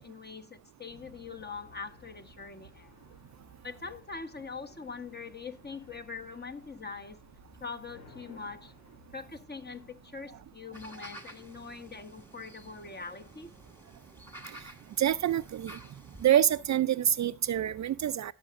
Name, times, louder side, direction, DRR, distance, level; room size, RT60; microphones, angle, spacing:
voice 1, 0.0-2.9 3.6-7.2 7.6-8.7 9.1-13.5, left 4 dB, 30° left, 1.2 m, -43 dB
sound 1, 0.9-10.5, left 4 dB, 85° left, 2.1 m, -58 dB
sound 2, 10.7-16.3, right 1 dB, 5° left, 1.8 m, -51 dB
voice 2, 15.0-15.7 16.2-18.3, right 10 dB, 50° right, 0.4 m, -26 dB
19.5 x 6.8 x 2.5 m
cardioid pair, 70°, 36 cm